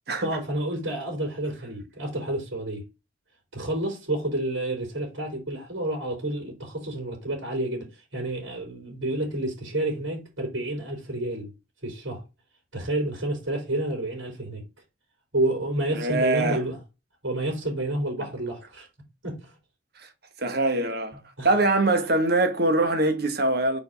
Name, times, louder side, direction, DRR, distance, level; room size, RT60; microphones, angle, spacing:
voice 1, 0.2-2.8 3.5-11.5 11.8-12.2 12.7-14.6 15.3-16.8 17.2-18.9 19.2-19.5 21.1-21.5, right 1 dB, 80° right, 4.1 m, -29 dB
voice 2, 15.9-16.6 20.4-21.2 21.4-23.8, right 2 dB, 55° right, 1.4 m, -23 dB
5.2 x 4.6 x 5.3 m
head